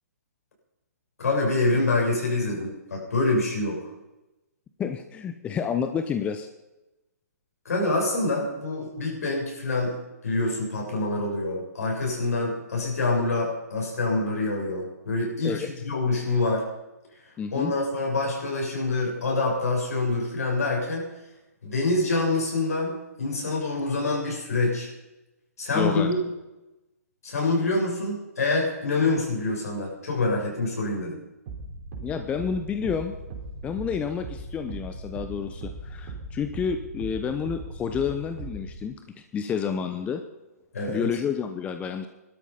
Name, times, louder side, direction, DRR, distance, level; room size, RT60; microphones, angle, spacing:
voice 1, 1.2-3.9 7.7-10.0 10.2-16.7 17.1-21.1 21.6-24.9 25.6-26.2 27.2-31.2 40.7-41.1, left 2 dB, 65° left, -1 dB, 7.1 m, -26 dB
voice 2, 4.8-6.5 15.4-15.7 17.4-17.7 25.7-26.1 32.0-33.2 33.6-40.2 40.9-42.1, left 7 dB, 15° left, 7 dB, 0.9 m, -29 dB
sound 1, 31.5-38.8, right 2 dB, 40° right, 3.9 m, -39 dB
18.5 x 12.5 x 5.7 m, 1.0 s
figure-of-eight pair, 125°, 9 cm